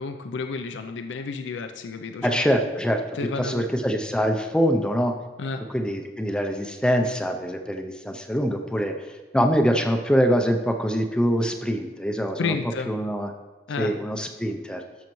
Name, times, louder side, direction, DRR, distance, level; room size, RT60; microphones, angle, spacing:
voice 1, 0.0-2.4 3.1-3.7 5.4-5.6 12.4-12.9 13.7-14.0, left 4 dB, 85° left, 7 dB, 0.4 m, -31 dB
voice 2, 2.2-5.1 5.7-12.5 12.9-13.3 13.8-14.8, equal, 5° left, 4 dB, 0.4 m, -24 dB
12.5 x 6.4 x 3.0 m, 1.3 s
head